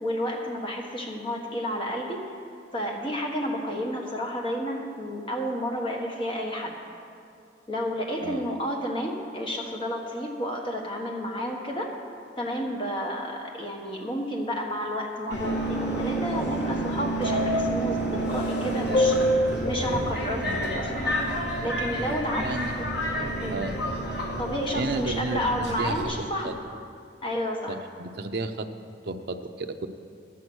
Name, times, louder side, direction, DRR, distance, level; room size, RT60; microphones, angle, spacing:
voice 1, 0.0-2.2 2.7-6.7 7.7-11.9 12.4-21.1 21.6-22.9 23.4-23.6 24.4-26.6 27.2-27.8, equal, 25° left, 0 dB, 1.3 m, -31 dB
Subway metro underground, 15.3-26.1, equal, 65° left, 2.0 m, -28 dB
voice 2, 22.3-22.7 23.5-23.8 24.7-25.4 25.8-26.5 27.7-28.7 29.0-29.9, right 2 dB, 60° right, 6 dB, 0.6 m, -32 dB
12.0 x 8.4 x 6.2 m, 2.5 s
head